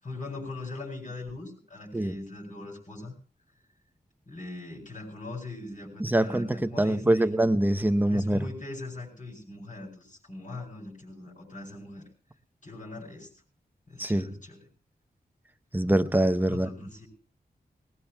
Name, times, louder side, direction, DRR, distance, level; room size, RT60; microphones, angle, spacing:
voice 1, 0.0-3.2 4.3-7.3 8.1-12.0 12.6-13.3 13.9-14.6 16.5-17.1, left 2 dB, 50° left, -4 dB, 7.7 m, -41 dB
voice 2, 6.0-8.4 14.0-14.3 15.7-16.7, right 1 dB, 10° right, 11 dB, 0.8 m, -24 dB
22.5 x 19.5 x 2.3 m, 0.39 s
wide cardioid pair, 100°, 17 cm